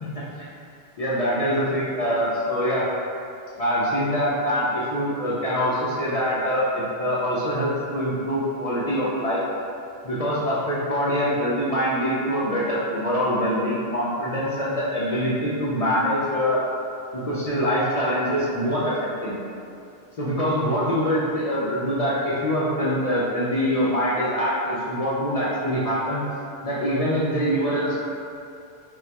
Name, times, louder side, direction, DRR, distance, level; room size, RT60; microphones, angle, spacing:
voice 1, 1.0-2.9 3.6-9.4 10.0-16.6 17.1-19.5 20.2-26.2 26.6-27.9, equal, 60° left, -9 dB, 0.4 m, -24 dB
2.3 x 2.2 x 3.9 m, 2.5 s
omnidirectional pair, 1.2 m